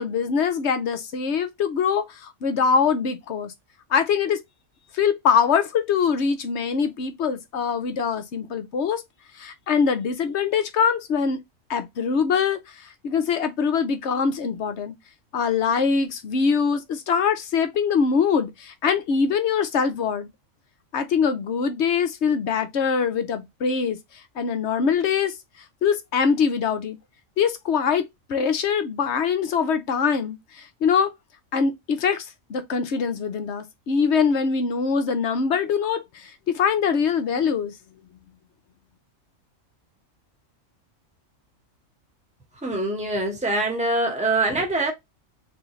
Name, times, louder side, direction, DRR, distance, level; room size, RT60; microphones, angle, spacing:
voice 1, 0.0-3.5 3.9-4.4 4.9-9.0 9.4-11.4 11.7-15.0 15.3-20.3 20.9-24.0 24.4-25.3 25.8-27.0 27.4-31.1 31.5-37.7, left 6 dB, 60° left, 0.9 m, -23 dB
voice 2, 42.6-44.9, right 2 dB, 5° right, 1.1 m, -24 dB
3.8 x 3.4 x 3.0 m
omnidirectional pair, 1.4 m